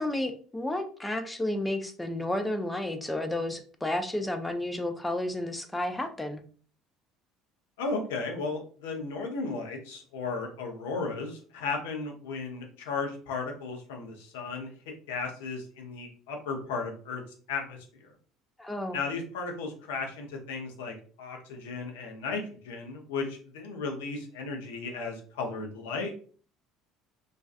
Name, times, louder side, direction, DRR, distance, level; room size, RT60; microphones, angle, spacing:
voice 1, 0.0-6.4 18.6-19.0, left 1 dB, 10° left, 6 dB, 0.5 m, -31 dB
voice 2, 7.8-17.2 17.5-18.1 18.9-26.1, left 4 dB, 70° left, 2 dB, 0.6 m, -35 dB
2.5 x 2.3 x 2.4 m, 0.42 s
figure-of-eight pair, 65°, 0 cm